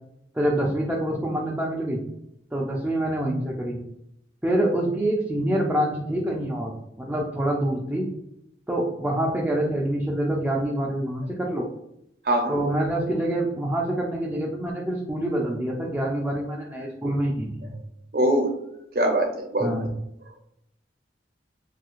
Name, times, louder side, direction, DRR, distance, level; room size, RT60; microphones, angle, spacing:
voice 1, 0.3-2.0 2.5-3.8 4.4-6.7 7.0-8.1 8.7-11.6 12.5-17.7 19.6-19.9, right 1 dB, 10° right, -4 dB, 0.4 m, -26 dB
voice 2, 18.1-18.5 18.9-19.7, right 1 dB, 55° right, 3 dB, 0.6 m, -22 dB
2.7 x 2.4 x 3.0 m, 0.80 s
head